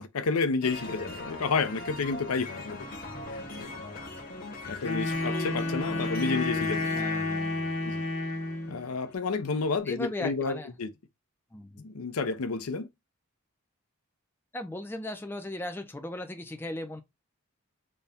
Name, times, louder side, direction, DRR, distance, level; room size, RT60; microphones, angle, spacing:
voice 1, 0.0-2.9 3.3-3.7 4.7-6.9 7.8-8.1 8.7-10.9 11.8-12.9, left 4 dB, 80° left, 0.6 m, -30 dB
sound 1, 0.6-9.1, left 2 dB, 40° left, 0.9 m, -40 dB
Wind instrument woodwind instrument, 4.8-8.8, left 2 dB, 65° left, 1.1 m, -30 dB
voice 2, 6.9-7.7 9.9-10.7 11.5-11.9 14.5-17.0, left 1 dB, 10° left, 0.4 m, -37 dB
4.1 x 2.2 x 3.4 m
head